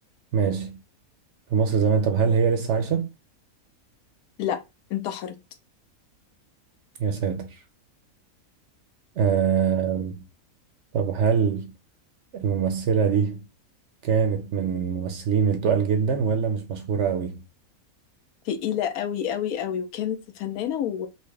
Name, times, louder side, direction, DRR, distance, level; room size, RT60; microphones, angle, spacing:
voice 1, 0.3-0.8 1.5-3.1 7.0-7.6 9.2-10.2 10.9-11.7 12.3-13.4 14.0-17.4, right 6 dB, 65° right, 0.8 m, -23 dB
voice 2, 4.9-5.3 18.5-21.1, left 9 dB, 80° left, 1.1 m, -28 dB
4.1 x 2.1 x 3.2 m
omnidirectional pair, 1.5 m